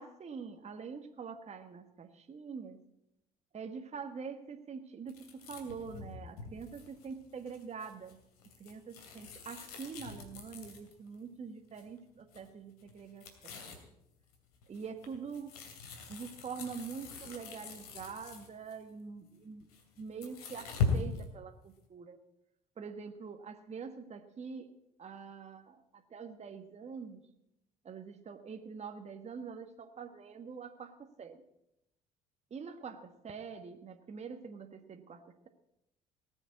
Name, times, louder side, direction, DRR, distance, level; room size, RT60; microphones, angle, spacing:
voice 1, 0.0-2.8 3.5-8.2 8.6-13.7 14.7-15.5 16.1-19.7 20.0-22.2 22.8-24.7 25.0-27.2 27.8-31.4 32.5-35.5, right 5 dB, 35° right, 6 dB, 1.4 m, -45 dB
sound 1, 5.1-11.2 11.7-12.0 12.3-12.5 12.8-13.9 14.3-18.8 19.6-21.2, left 4 dB, 80° left, 2.6 m, -40 dB
19.0 x 7.2 x 8.4 m, 0.83 s
hypercardioid pair, 60°, 19 cm